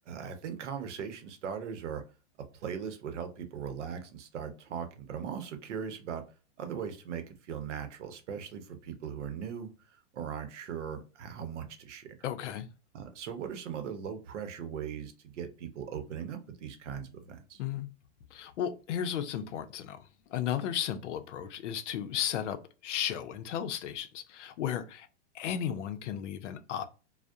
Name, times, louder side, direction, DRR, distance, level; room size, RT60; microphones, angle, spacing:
voice 1, 0.1-2.0 2.4-6.2 6.6-9.7 10.1-12.1 12.9-17.6, right 7 dB, 90° right, 0.7 m, -39 dB
voice 2, 12.2-12.7 17.6-17.9 18.3-25.1 25.3-26.8, left 9 dB, 90° left, 0.5 m, -34 dB
2.6 x 2.0 x 2.3 m
supercardioid pair, 170°, 35 cm